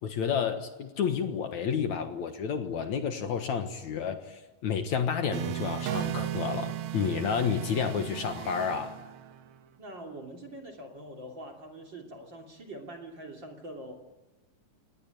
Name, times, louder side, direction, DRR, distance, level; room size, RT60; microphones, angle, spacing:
voice 1, 0.0-9.0, left 7 dB, 60° left, 7 dB, 2.6 m, -30 dB
sound 1, 5.3-9.6, right 13 dB, 65° right, 2.0 m, -36 dB
voice 2, 9.8-13.9, right 1 dB, 35° right, 2 dB, 3.3 m, -44 dB
29.0 x 18.5 x 9.2 m, 1.1 s
omnidirectional pair, 3.9 m